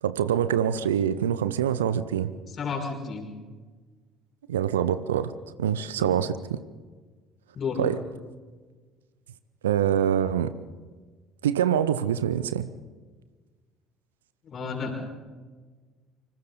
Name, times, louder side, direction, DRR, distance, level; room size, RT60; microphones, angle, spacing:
voice 1, 0.0-2.3 4.5-5.3 5.6-6.6 7.8-8.0 9.6-10.5 11.4-12.7, right 9 dB, 75° right, 14 dB, 0.7 m, -25 dB
voice 2, 2.6-3.3 6.0-6.2 7.5-7.8 14.4-15.1, left 5 dB, 40° left, 2 dB, 5.8 m, -32 dB
27.5 x 25.5 x 4.1 m, 1.4 s
figure-of-eight pair, 55°, 0 cm